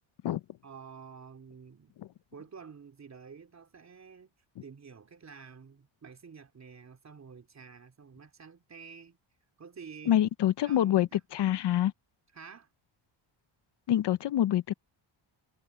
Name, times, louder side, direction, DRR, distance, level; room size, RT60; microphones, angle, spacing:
voice 1, 0.6-1.9 2.3-4.3 4.6-9.2 9.6-11.2 12.3-12.7, right 6 dB, 35° right, 3.4 m, -50 dB
voice 2, 10.1-11.9 13.9-14.7, left 12 dB, 60° left, 0.7 m, -26 dB
cardioid pair, 140°, 48 cm